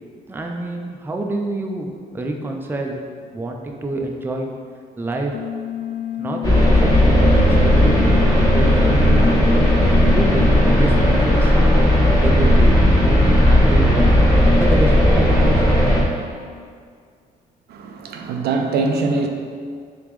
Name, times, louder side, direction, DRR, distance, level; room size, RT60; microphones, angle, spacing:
voice 1, 0.3-3.0 3.3-4.5 5.0-5.3 6.2-9.4 10.0-14.1 14.6-15.6, right 1 dB, 15° right, 1 dB, 0.4 m, -27 dB
sound 1, 5.3-10.5, left 12 dB, 60° left, 0.4 m, -29 dB
sound 2, 6.4-16.0, equal, 20° left, 1.0 m, -15 dB
voice 2, 17.7-19.3, right 3 dB, 75° right, 4 dB, 0.4 m, -22 dB
3.8 x 3.5 x 3.1 m, 2.1 s
cardioid pair, 90°, 17 cm